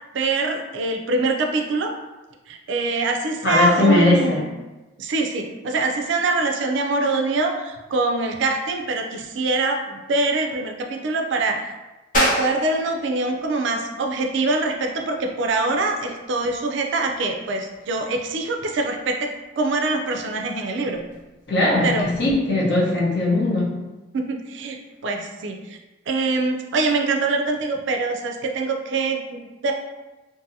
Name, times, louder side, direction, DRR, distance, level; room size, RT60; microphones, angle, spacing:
voice 1, 0.1-1.9 2.5-4.5 5.0-11.7 12.1-19.3 19.6-21.0 21.8-22.1 24.1-24.8 25.0-25.8 26.1-29.7, right 3 dB, 70° right, 3 dB, 0.3 m, -24 dB
voice 2, 3.4-4.5 21.5-23.7, left 2 dB, 55° left, -5 dB, 0.8 m, -19 dB
sound 1, 12.1-22.4, left 1 dB, 40° left, 0.4 m, -33 dB
2.6 x 2.5 x 2.6 m, 1.1 s
head